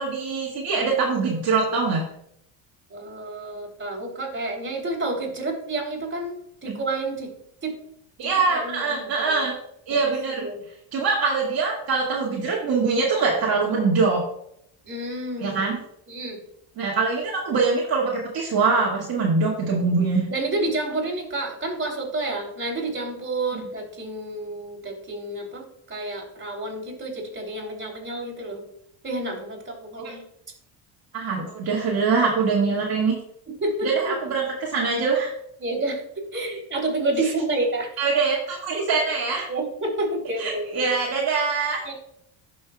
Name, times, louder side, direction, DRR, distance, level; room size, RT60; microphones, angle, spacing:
voice 1, 0.0-2.0 6.7-6.8 8.2-9.5 9.9-10.5 10.9-14.2 15.4-15.8 16.8-20.2 23.5-23.6 30.0-30.1 31.1-33.2 33.8-35.3 38.0-39.5 40.4-41.8, right 4 dB, 50° right, -4 dB, 2.1 m, -23 dB
voice 2, 2.9-7.3 7.6-7.7 8.5-9.5 10.0-10.1 10.4-10.6 14.8-15.6 16.1-16.4 20.3-28.6 29.0-30.2 31.4-31.5 33.6-34.2 35.6-37.9 38.7-38.8 39.5-40.8 41.8-41.9, right 2 dB, 25° right, 0 dB, 3.4 m, -29 dB
11.0 x 6.2 x 2.4 m, 0.70 s
supercardioid pair, 90°, 48 cm